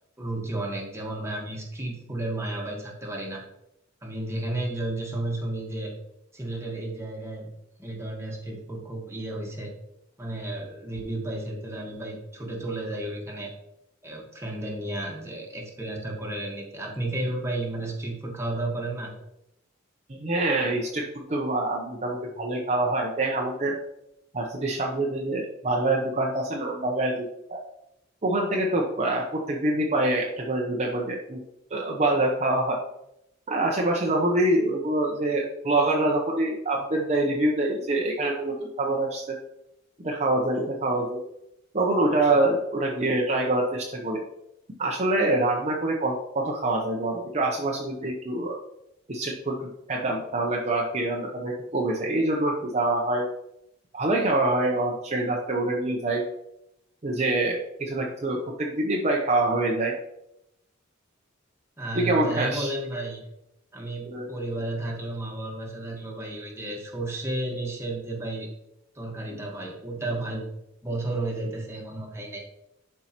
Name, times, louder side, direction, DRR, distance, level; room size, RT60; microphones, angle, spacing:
voice 1, 0.2-3.4 4.0-5.9 6.3-7.5 7.8-9.7 10.2-13.5 14.0-19.1 61.8-63.2 63.7-68.5 68.9-70.4 70.8-72.4, right 2 dB, 15° right, -1 dB, 1.4 m, -32 dB
voice 2, 20.2-21.0 21.3-23.8 24.3-27.6 28.2-31.4 31.7-32.8 33.5-39.4 40.0-41.2 41.7-44.2 44.8-48.6 49.1-49.6 49.9-53.2 53.9-56.2 57.0-59.9 61.9-62.7 64.1-64.3, right 2 dB, 35° right, -1 dB, 0.7 m, -25 dB
11.0 x 4.5 x 3.0 m, 0.83 s
head